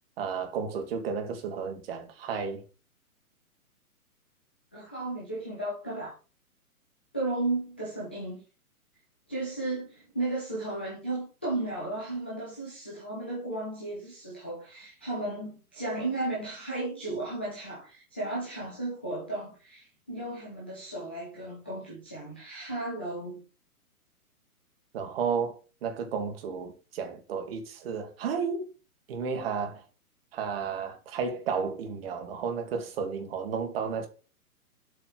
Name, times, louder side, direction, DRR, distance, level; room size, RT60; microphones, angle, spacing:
voice 1, 0.2-2.6 24.9-28.7 29.1-29.8 30.3-34.1, right 6 dB, 40° right, 2.0 m, -32 dB
voice 2, 4.7-6.1 7.1-8.4 9.3-23.4, right 2 dB, 10° left, 0.4 m, -34 dB
7.6 x 4.0 x 6.1 m
figure-of-eight pair, 125°, 45 cm